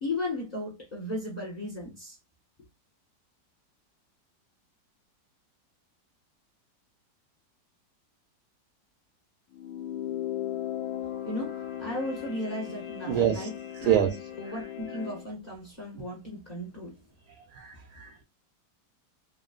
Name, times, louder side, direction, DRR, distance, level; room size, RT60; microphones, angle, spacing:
voice 1, 0.0-2.2 11.2-13.5 13.8-17.0, left 1 dB, 25° left, 1.2 m, -36 dB
sound 1, 9.5-15.3, left 11 dB, 65° left, 0.9 m, -37 dB
voice 2, 13.1-13.5 13.8-14.2 17.4-18.2, right 10 dB, 70° right, 1.0 m, -26 dB
3.0 x 2.7 x 2.3 m
omnidirectional pair, 2.0 m